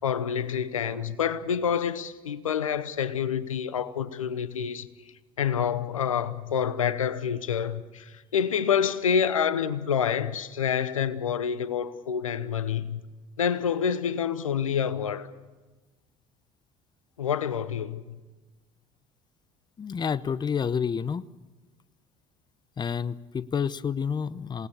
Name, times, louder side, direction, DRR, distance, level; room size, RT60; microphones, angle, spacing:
voice 1, 0.0-4.9 5.4-13.0 13.4-15.3 17.2-18.2, left 7 dB, 90° left, 0.9 m, -27 dB
voice 2, 19.8-21.3 22.8-24.7, left 7 dB, 25° left, 0.8 m, -29 dB
28.0 x 18.5 x 6.8 m
hypercardioid pair, 65°, 17 cm